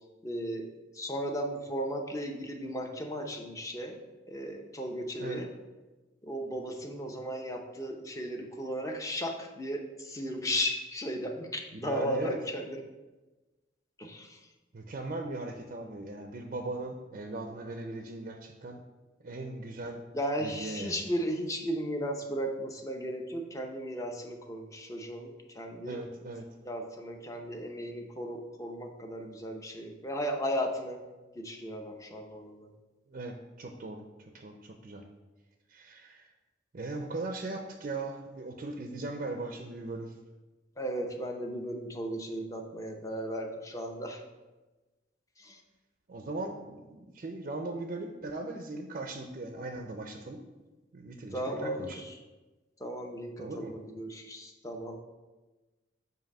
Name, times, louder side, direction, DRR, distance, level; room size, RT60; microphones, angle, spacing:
voice 1, 0.2-4.0 4.3-5.5 6.2-12.8 14.0-14.4 20.1-26.0 26.6-31.0 31.4-32.7 40.8-44.2 45.4-45.6 51.3-52.2 52.8-55.0, equal, 20° left, 3 dB, 0.7 m, -35 dB
voice 2, 11.7-12.4 14.7-18.8 19.2-20.0 20.4-21.0 25.8-26.5 33.1-34.1 34.3-35.0 35.7-36.3 36.7-40.1 46.1-50.4 50.9-52.0 53.4-53.7, right 2 dB, 45° right, 3 dB, 0.5 m, -39 dB
7.6 x 2.7 x 5.3 m, 1.2 s
head